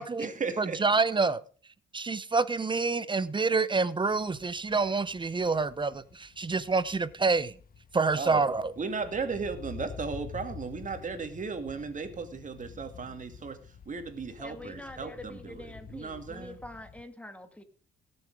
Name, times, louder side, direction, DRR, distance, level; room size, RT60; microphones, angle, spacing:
voice 1, 0.0-0.8 8.1-8.5 8.8-13.6 13.9-16.6, right 5 dB, 40° right, 2.4 m, -36 dB
voice 2, 0.6-1.4 1.9-7.5 7.9-8.7, right 4 dB, 25° right, 0.8 m, -27 dB
sound 1, 4.1-17.0, left 6 dB, 45° left, 1.0 m, -48 dB
voice 3, 14.4-17.6, left 1 dB, 5° left, 2.2 m, -45 dB
18.0 x 7.1 x 4.8 m
cardioid pair, 90°, 20 cm